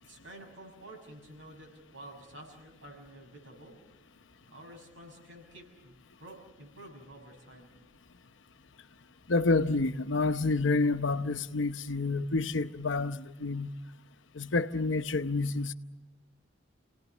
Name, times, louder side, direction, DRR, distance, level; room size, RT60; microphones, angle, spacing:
voice 1, 0.0-3.8 4.5-7.7, right 1 dB, 80° right, 6.6 m, -50 dB
voice 2, 9.3-13.7 14.3-15.7, left 3 dB, 80° left, 0.9 m, -28 dB
28.5 x 18.5 x 7.3 m
head